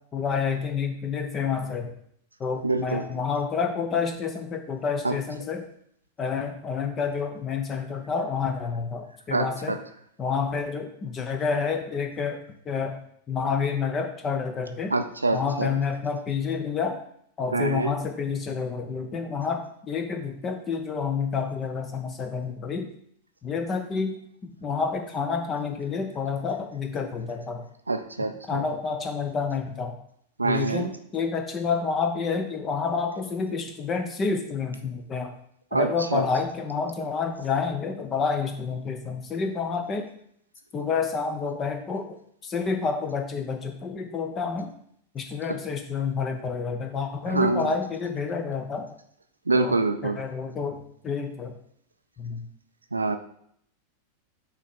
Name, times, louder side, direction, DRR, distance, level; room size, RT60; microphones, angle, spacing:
voice 1, 0.1-1.9 2.4-5.7 6.2-9.8 10.2-13.0 13.3-14.9 15.3-17.0 17.4-22.9 23.4-24.2 24.6-27.7 28.5-30.0 30.4-35.3 35.7-40.0 40.7-42.2 42.4-44.7 45.1-48.9 49.5-51.5 52.2-52.4, left 5 dB, 25° left, 4 dB, 1.0 m, -29 dB
voice 2, 2.6-3.0 5.0-5.2 9.3-9.8 14.9-15.7 17.5-17.9 27.9-28.6 30.4-30.9 35.7-36.2 45.5-45.6 47.3-47.7 49.5-50.2 52.9-53.2, right 3 dB, 80° right, 8 dB, 0.5 m, -25 dB
6.1 x 3.3 x 5.5 m, 0.67 s
figure-of-eight pair, 90°, 0 cm